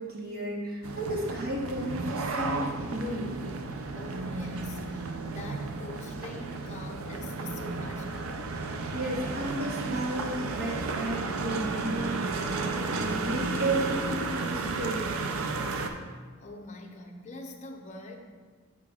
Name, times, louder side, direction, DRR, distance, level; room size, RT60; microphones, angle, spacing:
voice 1, 0.0-2.7 2.9-3.3 8.9-15.1, right 1 dB, 45° right, -2 dB, 1.1 m, -33 dB
sound 1, 0.8-15.9, right 3 dB, 80° right, 0.5 m, -33 dB
voice 2, 4.0-8.4 16.4-18.2, left 2 dB, 35° left, 1 dB, 0.6 m, -44 dB
8.8 x 4.7 x 2.4 m, 1.5 s
head